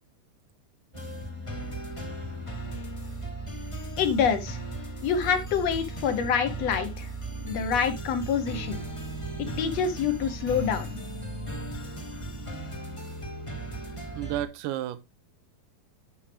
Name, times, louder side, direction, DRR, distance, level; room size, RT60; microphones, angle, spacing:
sound 1, 0.9-14.4, right 2 dB, 15° left, 1.1 m, -36 dB
voice 1, 4.0-4.6 5.0-7.1 7.4-8.8 9.6-11.0, left 7 dB, 60° left, 1.8 m, -26 dB
voice 2, 14.2-15.0, right 13 dB, 75° right, 2.2 m, -31 dB
11.0 x 6.3 x 3.4 m
omnidirectional pair, 4.3 m